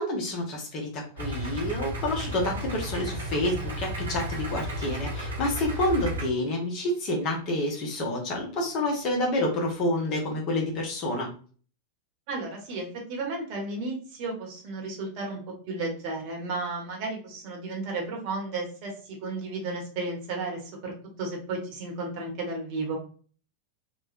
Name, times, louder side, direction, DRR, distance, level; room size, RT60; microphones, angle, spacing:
voice 1, 0.0-11.3, left 1 dB, 35° left, 0 dB, 0.8 m, -28 dB
Idling, 1.2-6.3, right 1 dB, 70° right, 0.9 m, -33 dB
voice 2, 12.3-15.4 15.7-22.9, right 3 dB, 45° right, 0 dB, 1.0 m, -33 dB
3.1 x 2.2 x 2.4 m, 0.42 s
figure-of-eight pair, 90°, 0 cm